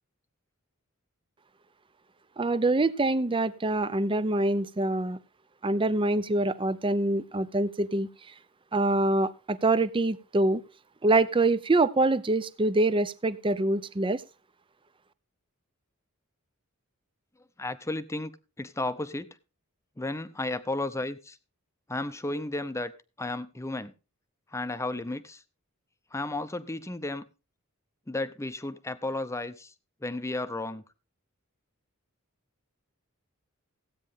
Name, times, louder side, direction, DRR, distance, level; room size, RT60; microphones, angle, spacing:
voice 1, 2.4-5.2 5.6-8.1 8.7-10.6 11.0-14.2, right 2 dB, 25° right, 0.6 m, -25 dB
voice 2, 17.6-18.3 18.6-19.3 20.0-21.4 21.9-22.9 23.2-23.9 24.5-25.4 26.1-27.2 28.1-29.7 30.0-30.8, left 2 dB, 15° left, 0.7 m, -33 dB
15.5 x 8.8 x 3.6 m
head